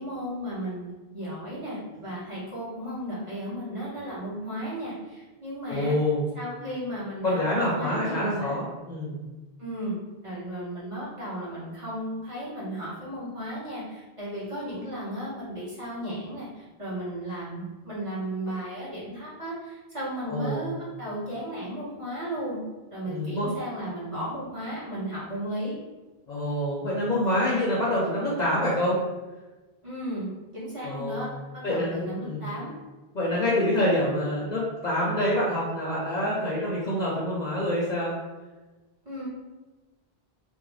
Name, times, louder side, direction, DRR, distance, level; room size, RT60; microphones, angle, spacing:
voice 1, 0.0-5.9 6.3-8.6 9.6-10.0 10.2-22.6 22.9-25.7 29.8-30.3 30.5-31.3 31.5-32.7 39.0-39.3, equal, 35° right, -10 dB, 0.9 m, -34 dB
voice 2, 5.7-6.3 7.2-9.2 20.3-20.7 23.1-23.5 26.3-29.0 30.8-31.3 31.6-32.0 32.2-32.5 33.1-38.1, left 1 dB, 50° left, -6 dB, 0.6 m, -26 dB
2.4 x 2.0 x 3.1 m, 1.2 s
omnidirectional pair, 1.1 m